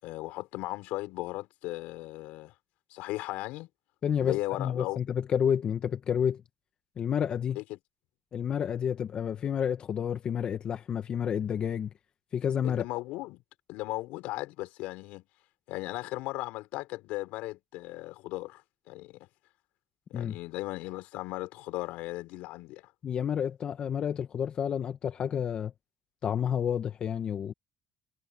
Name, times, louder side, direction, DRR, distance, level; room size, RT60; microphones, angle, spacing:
voice 1, 0.0-2.5 2.9-3.7 4.2-5.0 7.5-7.8 12.6-13.4 13.7-15.3 15.7-18.6 18.9-19.3 20.1-22.8, left 19 dB, 80° left, 5.7 m, -36 dB
voice 2, 4.0-6.4 7.0-7.6 8.3-11.9 12.3-12.8 20.1-20.4 23.0-25.7 26.2-27.5, left 8 dB, 45° left, 1.4 m, -30 dB
cardioid pair, 110°, 2 cm